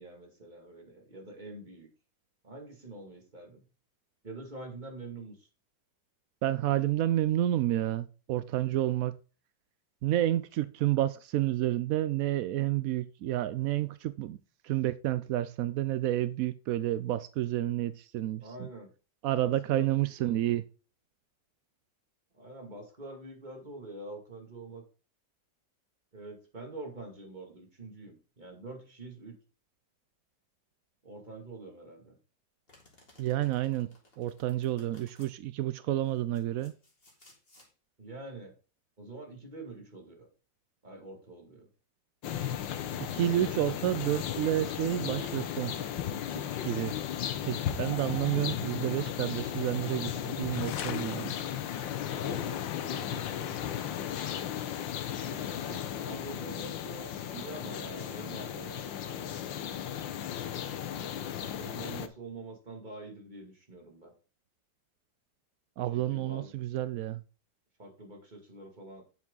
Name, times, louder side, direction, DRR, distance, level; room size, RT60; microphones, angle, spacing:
voice 1, 0.0-1.9 2.4-3.7 4.2-5.5 18.4-18.9 19.4-20.4 22.3-24.8 26.1-29.4 31.0-32.2 38.0-38.5 39.0-40.3 40.8-41.7 46.3-46.5 52.0-53.7 55.2-59.4 60.9-64.1 65.9-66.5 67.8-69.0, right 2 dB, 25° right, 2.4 m, -46 dB
voice 2, 6.4-9.2 10.0-14.4 14.6-18.7 19.2-20.6 33.2-33.9 34.2-36.7 43.1-45.7 46.7-46.9 47.4-51.4 65.8-67.2, right 13 dB, 75° right, 0.7 m, -30 dB
Domestic sounds home sounds, 32.7-35.3 36.1-37.7, left 1 dB, 30° left, 3.2 m, -60 dB
sound 1, 42.2-62.1, left 10 dB, 85° left, 1.6 m, -35 dB
sound 2, 50.5-56.3, left 9 dB, 60° left, 1.0 m, -43 dB
9.4 x 7.4 x 3.9 m
omnidirectional pair, 2.0 m